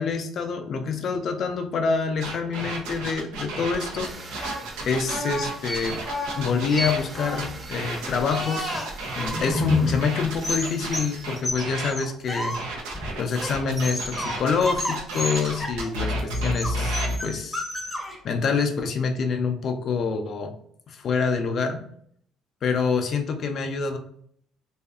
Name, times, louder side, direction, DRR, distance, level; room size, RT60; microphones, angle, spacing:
voice 1, 0.0-4.2 4.8-6.0 6.4-8.8 9.2-12.6 13.2-17.6 18.2-20.5 20.9-21.8 22.6-24.0, left 5 dB, 55° left, 6 dB, 0.4 m, -26 dB
sound 1, 2.2-7.0 7.3-11.9 12.5-17.2, right 1 dB, 90° right, 0.5 m, -32 dB
sound 2, 4.0-11.4, right 2 dB, 40° right, 0.5 m, -44 dB
sound 3, 4.4-10.0 10.3-12.6 12.9-14.4 14.6-15.9 16.3-18.2, left 1 dB, 5° left, 0.7 m, -30 dB
2.6 x 2.4 x 2.3 m, 0.65 s
supercardioid pair, 85°, 0 cm